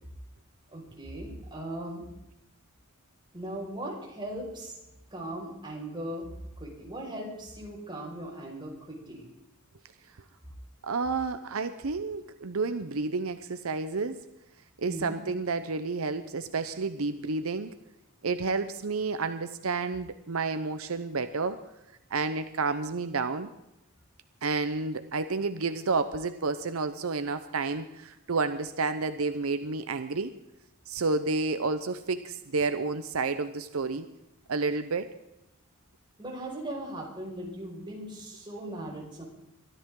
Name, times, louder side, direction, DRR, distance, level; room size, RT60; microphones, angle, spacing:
voice 1, 0.7-2.0 3.3-4.8 5.1-6.3 6.6-9.3 14.9-15.2 36.2-39.2, right 1 dB, 20° right, -2 dB, 5.5 m, -38 dB
voice 2, 10.8-14.2 14.8-17.7 18.2-21.6 22.1-23.5 24.4-30.3 30.9-34.1 34.5-35.1, right 4 dB, 75° right, 10 dB, 0.8 m, -30 dB
23.0 x 13.5 x 3.8 m, 0.92 s
head